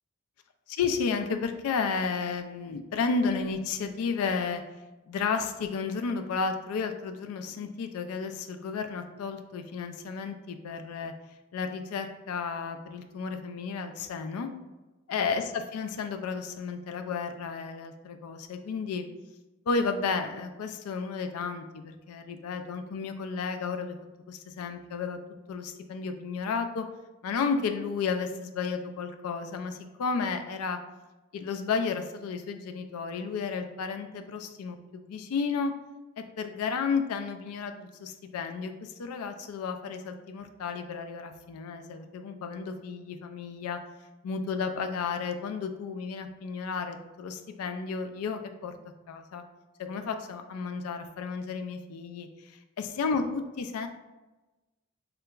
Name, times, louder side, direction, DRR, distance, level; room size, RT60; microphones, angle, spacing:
voice 1, 0.7-4.6 5.1-11.1 11.5-14.5 15.1-19.1 19.7-24.0 24.3-25.2 25.5-26.9 27.2-30.8 31.3-35.7 36.2-43.8 44.2-48.7 49.1-49.4 49.8-52.5 52.8-53.9, left 5 dB, 85° left, 7 dB, 0.3 m, -32 dB
3.3 x 2.9 x 2.3 m, 1.1 s
head